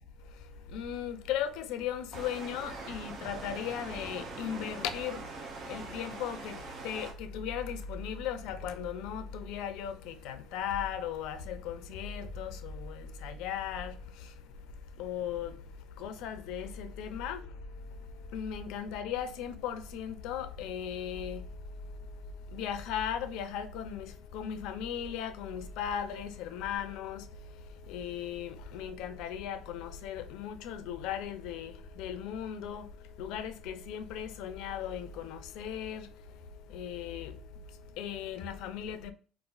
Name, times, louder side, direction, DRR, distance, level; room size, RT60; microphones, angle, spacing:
voice 1, 0.7-5.2 5.7-6.6 6.8-14.3 15.0-15.6 16.0-17.5 18.3-21.4 22.5-27.3 27.9-32.9 33.2-36.1 36.7-37.4 38.0-39.1, left 8 dB, 75° left, 0.4 m, -37 dB
sound 1, 2.1-7.1, right 3 dB, 40° right, 0.6 m, -43 dB
4.1 x 2.4 x 2.3 m
cardioid pair, 175°, 0 cm